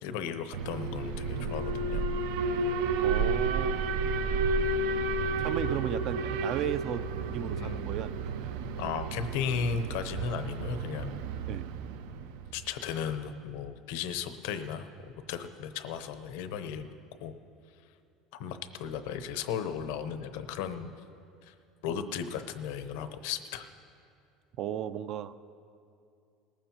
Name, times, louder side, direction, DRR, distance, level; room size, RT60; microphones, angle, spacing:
voice 1, 0.0-2.0 7.6-8.0 8.8-11.2 12.5-14.9 15.3-16.9 17.2-17.3 18.3-20.9 21.4-21.5 21.8-23.7, left 7 dB, 75° left, 10 dB, 0.8 m, -35 dB
Alarm, 0.5-12.5, right 3 dB, 85° right, 0.6 m, -31 dB
voice 2, 3.0-4.1 5.4-7.1 7.3-8.6 11.5-11.9 24.6-25.3, right 10 dB, 45° right, 13 dB, 0.4 m, -35 dB
19.5 x 15.0 x 2.9 m, 2.5 s
cardioid pair, 160°, 0 cm